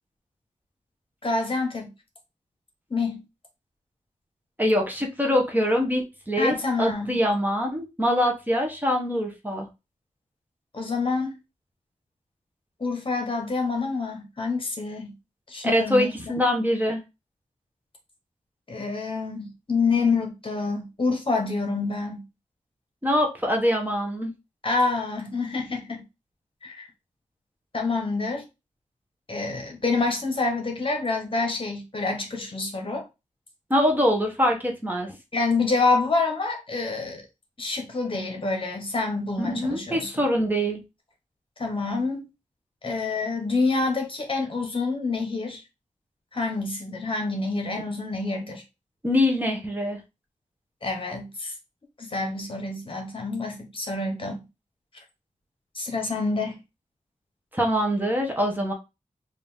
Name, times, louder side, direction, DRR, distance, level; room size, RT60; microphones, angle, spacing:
voice 1, 1.2-1.9 2.9-3.2 6.4-7.2 10.7-11.3 12.8-15.1 15.5-16.3 18.7-22.2 24.6-26.1 26.6-26.9 27.7-28.4 29.3-33.0 35.3-37.2 37.6-40.1 41.6-42.3 42.8-45.6 46.3-48.6 50.8-51.5 52.0-54.5 55.7-56.6, left 3 dB, 45° left, 1.3 m, -27 dB
voice 2, 4.6-9.7 15.6-17.0 23.0-24.3 33.7-35.1 39.4-40.8 49.0-50.0 57.5-58.7, equal, 15° right, 1.0 m, -24 dB
4.0 x 2.7 x 3.5 m
wide cardioid pair, 85°, 13 cm